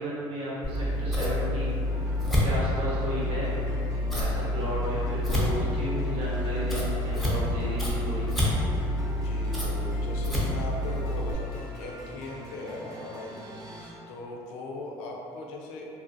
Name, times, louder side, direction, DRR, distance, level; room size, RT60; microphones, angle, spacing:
voice 1, 0.0-1.7 2.4-3.5 4.1-8.3, right 1 dB, 65° right, -7 dB, 1.0 m, -34 dB
Scissors, 0.6-11.3, left 1 dB, ahead, 0.6 m, -28 dB
sound 1, 1.8-13.9, equal, 35° right, 0.7 m, -44 dB
voice 2, 8.8-13.8 14.1-15.9, left 2 dB, 85° left, -1 dB, 0.4 m, -39 dB
2.6 x 2.6 x 2.5 m, 2.5 s
supercardioid pair, 100°, 10 cm